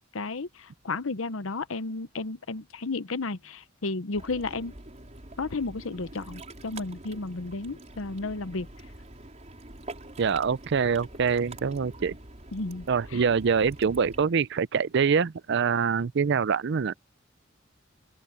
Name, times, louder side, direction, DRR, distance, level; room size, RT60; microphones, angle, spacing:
voice 1, 0.0-4.7 5.4-8.7 12.5-12.9 13.1-13.2, left 3 dB, 90° left, 0.9 m, -33 dB
Ocean, 4.1-14.2, right 2 dB, 35° right, 4.6 m, -45 dB
voice 2, 10.2-12.2 12.9-16.9, right 6 dB, 60° right, 0.5 m, -25 dB
open air
head